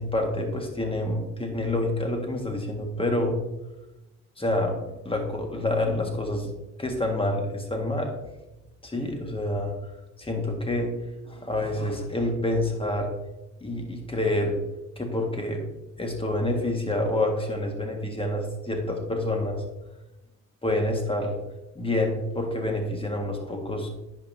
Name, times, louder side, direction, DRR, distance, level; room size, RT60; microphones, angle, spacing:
voice 1, 0.0-3.4 4.4-4.8 5.0-6.5 6.8-8.1 8.8-9.7 10.2-10.9 11.2-13.1 13.6-14.6 15.0-15.7 16.0-19.6 20.6-21.4 21.7-23.9, left 1 dB, 20° left, 3 dB, 1.6 m, -27 dB
10.0 x 5.4 x 2.7 m, 0.98 s
cardioid pair, 75°, 31 cm